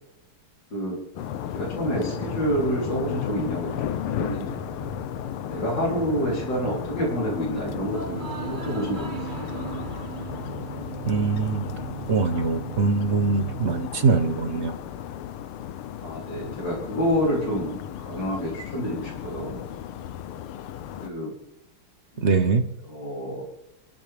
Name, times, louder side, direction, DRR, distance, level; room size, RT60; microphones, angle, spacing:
sound 1, 1.2-21.1, left 10 dB, 90° left, 1.7 m, -35 dB
voice 1, 1.5-5.0 5.4-9.7 16.0-19.7 21.0-21.3 22.1-22.4 22.9-23.5, equal, 55° left, -3 dB, 4.3 m, -28 dB
sound 2, 1.8-15.5, right 4 dB, 65° right, 3.9 m, -48 dB
sound 3, 3.7-13.8, right 7 dB, 85° right, 0.4 m, -38 dB
voice 2, 11.1-11.6 12.1-14.7 22.2-22.6, right 4 dB, 45° right, 8 dB, 0.9 m, -22 dB
29.5 x 12.5 x 3.5 m, 0.88 s
omnidirectional pair, 2.3 m